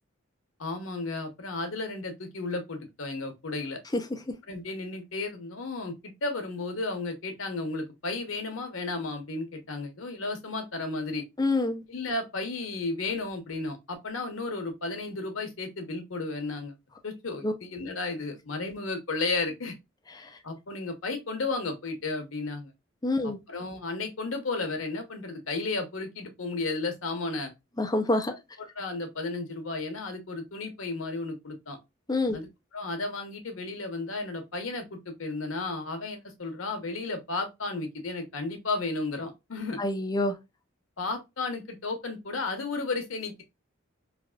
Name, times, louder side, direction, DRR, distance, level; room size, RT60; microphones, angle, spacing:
voice 1, 0.6-3.8 4.5-11.2 11.9-16.7 17.0-19.7 20.4-22.7 23.5-27.5 28.6-31.8 32.3-39.8 41.0-43.4, left 3 dB, 85° left, 1.0 m, -33 dB
voice 2, 11.4-11.8 17.4-17.5 20.2-20.3 23.0-23.4 27.8-28.3 32.1-32.4 39.8-40.4, left 2 dB, 20° left, 0.5 m, -26 dB
3.3 x 2.4 x 2.3 m
head